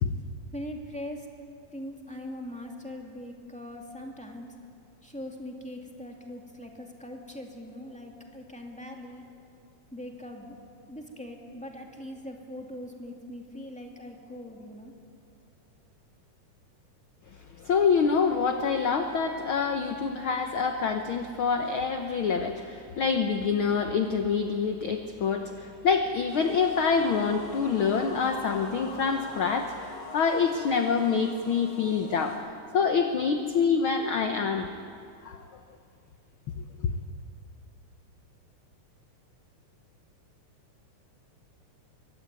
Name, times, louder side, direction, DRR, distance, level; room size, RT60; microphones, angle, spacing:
voice 1, 0.5-1.3 1.7-4.5 5.0-9.2 9.9-10.6 10.9-14.9, left 1 dB, 5° left, 1 dB, 1.9 m, -41 dB
voice 2, 17.6-34.7 35.2-35.4, left 5 dB, 65° left, 6 dB, 1.3 m, -26 dB
sound 1, 26.3-32.4, left 2 dB, 85° left, 7.6 m, -44 dB
23.0 x 17.0 x 9.6 m, 2.4 s
omnidirectional pair, 3.5 m